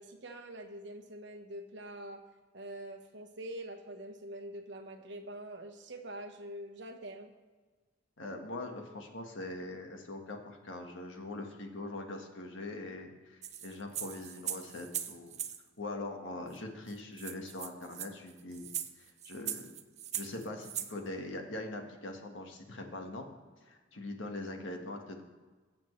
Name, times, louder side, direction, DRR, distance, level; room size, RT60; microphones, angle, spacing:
voice 1, 0.0-2.2 2.5-7.3, right 1 dB, 60° right, 5 dB, 1.2 m, -45 dB
voice 2, 8.2-15.4 15.8-18.7 19.0-19.7 20.1-23.2 23.6-25.2, left 2 dB, 70° left, 3 dB, 1.5 m, -42 dB
sound 1, 13.4-15.6 16.6-16.7 16.9-17.0 17.2-20.9, right 10 dB, 35° right, 0.6 m, -40 dB
21.5 x 7.3 x 3.2 m, 1.4 s
head